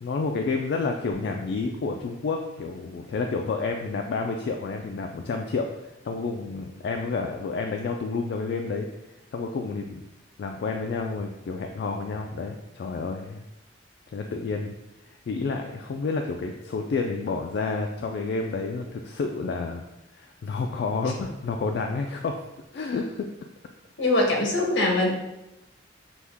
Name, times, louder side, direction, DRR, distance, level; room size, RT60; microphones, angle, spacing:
voice 1, 0.0-8.9 9.3-10.1 10.4-13.4 14.1-14.7 15.0-19.8 20.1-22.4 22.7-23.3, left 4 dB, 65° left, 3 dB, 0.3 m, -30 dB
sound 1, 1.1-7.4, right 3 dB, 15° left, 0.7 m, -55 dB
voice 2, 24.0-25.1, left 2 dB, 80° left, 0 dB, 1.0 m, -22 dB
6.0 x 2.1 x 3.4 m, 0.94 s
head